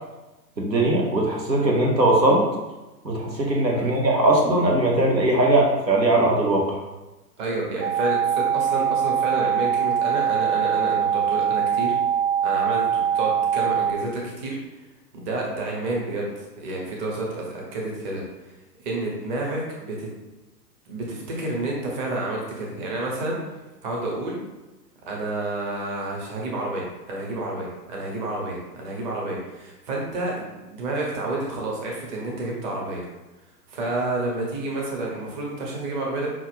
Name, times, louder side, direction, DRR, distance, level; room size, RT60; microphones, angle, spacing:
voice 1, 0.6-2.4 3.0-6.8, right 1 dB, 85° right, -1 dB, 1.1 m, -20 dB
voice 2, 7.4-11.9 12.4-14.6 15.1-18.2 18.8-20.1 20.9-23.4 23.8-24.4 25.1-33.0 33.7-36.3, right 2 dB, 30° right, -2 dB, 0.8 m, -29 dB
sound 1, 7.8-13.9, right 8 dB, 65° right, 0.8 m, -23 dB
5.6 x 2.4 x 3.3 m, 1.1 s
figure-of-eight pair, 110°, 50 cm